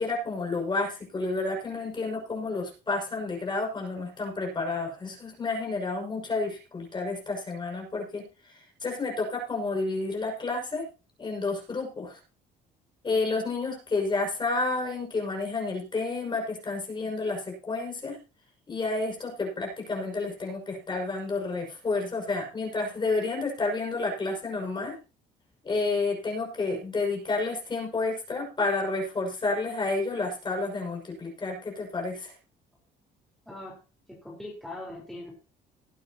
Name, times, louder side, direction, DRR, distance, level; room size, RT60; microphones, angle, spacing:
voice 1, 0.0-10.9 11.2-12.2 13.0-18.2 18.7-24.9 25.6-32.3, left 3 dB, 25° left, 1 dB, 6.2 m, -30 dB
voice 2, 33.5-33.8 34.1-35.3, left 1 dB, ahead, -3 dB, 4.5 m, -41 dB
19.5 x 9.5 x 3.0 m, 0.33 s
cardioid pair, 110°, 17 cm